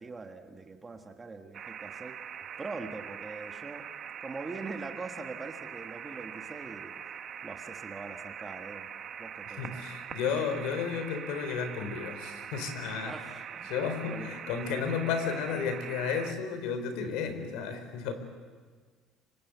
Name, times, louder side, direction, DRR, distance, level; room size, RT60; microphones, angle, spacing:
voice 1, 0.0-2.2 2.6-3.9 4.2-6.9 7.4-8.9 9.2-9.8 13.0-13.7 14.0-14.4 14.8-14.9 15.5-15.6, right 3 dB, 15° right, 5 dB, 1.5 m, -42 dB
sound 1, 1.5-16.3, right 8 dB, 35° right, 1.1 m, -43 dB
voice 2, 9.6-13.1 13.7-18.1, left 6 dB, 85° left, 9 dB, 4.4 m, -33 dB
29.0 x 25.0 x 8.1 m, 1.5 s
cardioid pair, 175°, 0 cm